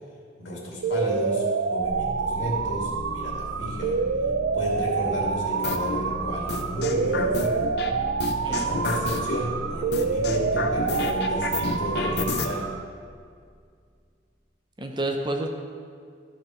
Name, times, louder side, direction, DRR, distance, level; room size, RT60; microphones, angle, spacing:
voice 1, 0.4-4.0 4.5-7.7 8.5-12.7, equal, 85° left, -3 dB, 2.4 m, -32 dB
sound 1, 0.8-12.8, right 5 dB, 90° right, 0.4 m, -27 dB
sound 2, 1.8-13.6, equal, 5° left, 2.3 m, -38 dB
sound 3, 5.6-6.0 6.5-7.9 8.2-9.4 9.9-12.5, left 4 dB, 60° left, 0.6 m, -30 dB
voice 2, 8.4-8.8 14.8-15.5, right 2 dB, 25° right, 3 dB, 0.6 m, -29 dB
13.0 x 5.0 x 4.4 m, 2.1 s
head